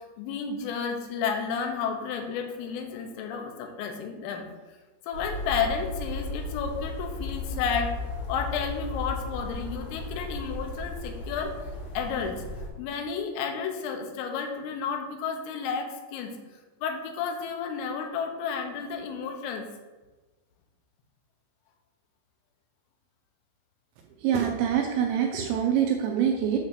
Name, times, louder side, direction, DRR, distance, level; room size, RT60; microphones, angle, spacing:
voice 1, 0.2-4.4 5.1-7.9 8.3-11.5 11.9-12.4 12.8-16.3 16.8-19.7, left 6 dB, 85° left, 4 dB, 3.6 m, -32 dB
sound 1, 5.1-12.7, left 2 dB, 65° left, 1.8 m, -35 dB
voice 2, 24.2-26.6, right 8 dB, 85° right, 2 dB, 2.6 m, -25 dB
9.2 x 3.3 x 6.5 m, 1.2 s
omnidirectional pair, 5.9 m